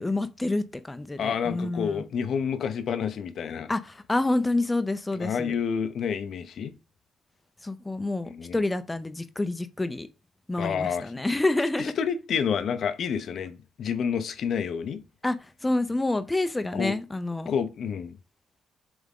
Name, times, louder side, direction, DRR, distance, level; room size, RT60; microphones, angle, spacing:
voice 1, 0.0-2.0 3.7-5.5 7.6-10.1 10.5-11.9 15.2-17.5, left 2 dB, 15° left, 0.6 m, -28 dB
voice 2, 1.2-3.7 5.1-6.7 8.2-8.6 10.6-11.1 11.8-15.0 16.7-17.0 17.5-18.2, left 7 dB, 65° left, 0.7 m, -29 dB
7.4 x 3.5 x 3.7 m
cardioid pair, 90°, 0 cm